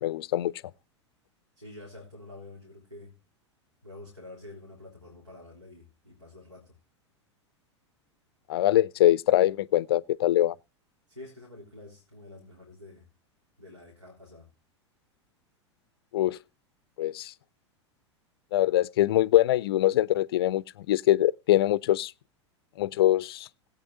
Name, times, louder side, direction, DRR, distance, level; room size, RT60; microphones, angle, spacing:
voice 1, 0.0-0.5 8.5-10.5 16.1-16.4 17.0-17.3 18.5-22.1 22.8-23.5, left 14 dB, 55° left, 0.5 m, -23 dB
voice 2, 1.6-3.1 3.8-6.8 11.1-13.1 13.6-14.5, left 2 dB, 85° right, 3.6 m, -48 dB
19.5 x 8.7 x 2.6 m
figure-of-eight pair, 90°, 15 cm